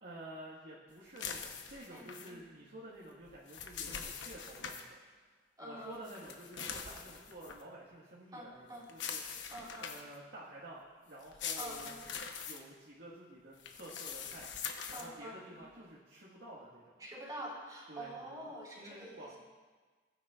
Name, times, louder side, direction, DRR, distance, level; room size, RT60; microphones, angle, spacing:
voice 1, 0.0-5.0 5.3-9.5 9.8-12.0 12.4-14.5 14.9-17.1 17.9-18.4 18.8-19.4, right 1 dB, 75° right, -8 dB, 1.6 m, -51 dB
sound 1, 1.2-2.3 3.3-4.8 6.0-7.6 8.9-10.2 11.2-12.6 13.6-15.1, left 6 dB, 80° left, 1.0 m, -43 dB
voice 2, 1.9-2.4 5.6-6.0 8.3-8.8 9.5-9.9 11.6-12.0 14.9-15.7 17.0-19.4, right 1 dB, 20° right, -6 dB, 3.6 m, -46 dB
18.5 x 9.7 x 2.4 m, 1.4 s
head